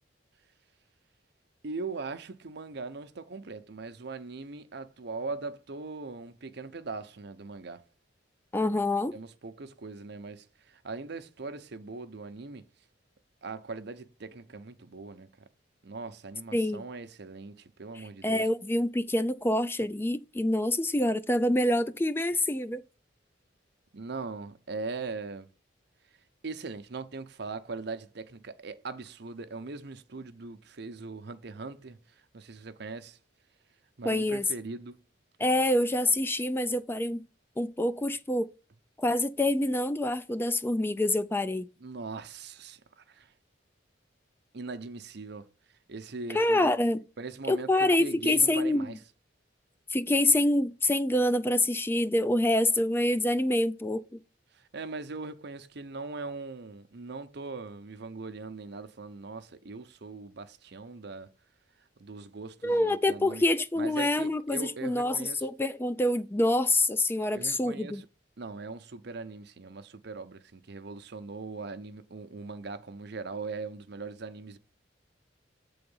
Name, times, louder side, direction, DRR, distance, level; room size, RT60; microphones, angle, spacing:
voice 1, 1.6-7.8 9.1-12.7 13.4-15.3 15.8-18.5 23.9-25.5 26.4-32.0 32.3-33.2 34.0-35.0 41.8-43.3 44.5-45.5 45.9-46.7 47.2-49.0 54.5-61.3 62.0-63.4 63.8-65.5 67.3-68.1 68.4-74.6, right 3 dB, 65° right, 0.7 m, -40 dB
voice 2, 8.5-9.1 16.5-16.8 18.0-22.8 34.1-34.5 35.4-37.2 37.6-38.5 39.0-41.7 46.3-47.0 47.5-49.0 49.9-54.0 62.6-68.0, left 1 dB, 10° left, 0.4 m, -26 dB
7.9 x 3.9 x 5.4 m
head